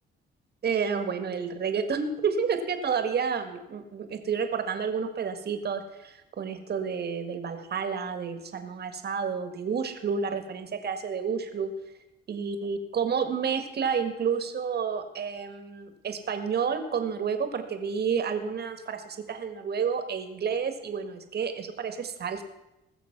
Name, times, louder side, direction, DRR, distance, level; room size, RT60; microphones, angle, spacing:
voice 1, 0.6-11.7 12.3-22.4, right 6 dB, 55° right, 8 dB, 1.8 m, -30 dB
20.0 x 6.9 x 6.0 m, 0.95 s
cardioid pair, 90°, 20 cm